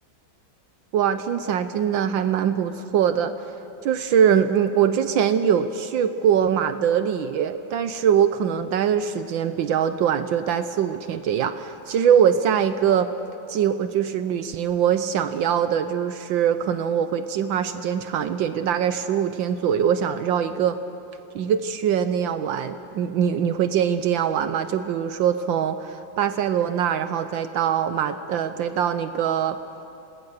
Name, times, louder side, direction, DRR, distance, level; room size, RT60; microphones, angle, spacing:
voice 1, 0.9-3.5 3.8-13.1 13.5-20.8 21.3-29.6, right 8 dB, 70° right, 10 dB, 1.4 m, -22 dB
27.5 x 19.5 x 6.5 m, 2.8 s
omnidirectional pair, 2.2 m